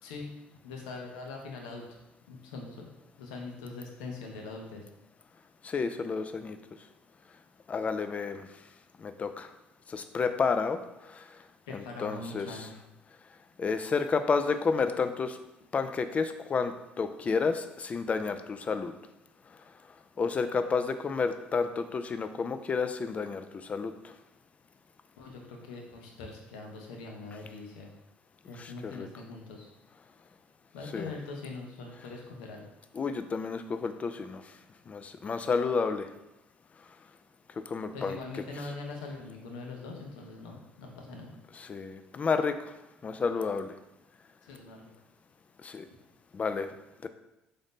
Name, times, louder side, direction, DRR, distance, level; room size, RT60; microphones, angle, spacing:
voice 1, 0.0-0.3 0.6-1.9 2.3-2.9 3.2-4.8 11.7-12.7 25.2-28.0 28.5-29.7 30.7-32.6 37.9-41.3 44.4-44.9, left 3 dB, 90° left, 1 dB, 0.7 m, -42 dB
voice 2, 5.6-6.6 7.7-8.5 9.0-9.5 9.9-10.8 11.1-11.2 11.7-12.5 13.6-15.4 15.7-18.9 20.2-24.1 28.6-29.1 30.9-31.1 33.0-34.4 34.9-36.1 37.7-38.2 41.7-42.5 43.0-43.7 45.6-45.9 46.3-46.7 47.0-47.1, left 5 dB, 35° left, 9 dB, 0.4 m, -30 dB
3.8 x 2.6 x 3.6 m, 0.92 s
supercardioid pair, 70°, 4 cm